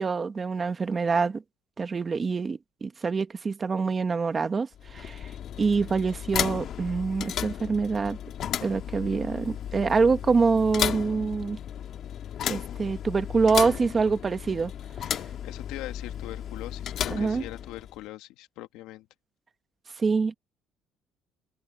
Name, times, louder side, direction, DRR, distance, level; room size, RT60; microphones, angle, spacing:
voice 1, 0.0-1.4 1.8-5.3 5.6-8.2 8.6-11.6 12.5-14.7 15.1-15.2 17.1-17.4 20.0-20.3, right 4 dB, 25° right, 1.4 m, -25 dB
sound 1, 4.7-18.0, left 9 dB, 55° left, 2.0 m, -34 dB
voice 2, 15.4-19.1, left 16 dB, 85° left, 2.1 m, -41 dB
open air
cardioid pair, 130°, 0 cm